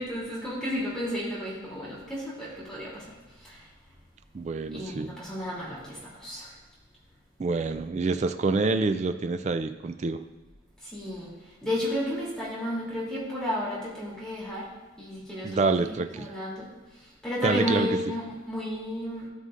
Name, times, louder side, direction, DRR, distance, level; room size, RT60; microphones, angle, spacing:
voice 1, 0.0-3.1 3.4-3.7 4.7-6.5 10.8-11.4 11.6-14.7 15.0-16.7 17.0-19.3, left 1 dB, 5° left, -8 dB, 2.8 m, -33 dB
voice 2, 4.3-5.1 7.4-10.2 15.4-16.3 17.4-18.0, right 3 dB, 35° right, 9 dB, 0.3 m, -27 dB
13.0 x 6.6 x 2.5 m, 1.2 s
head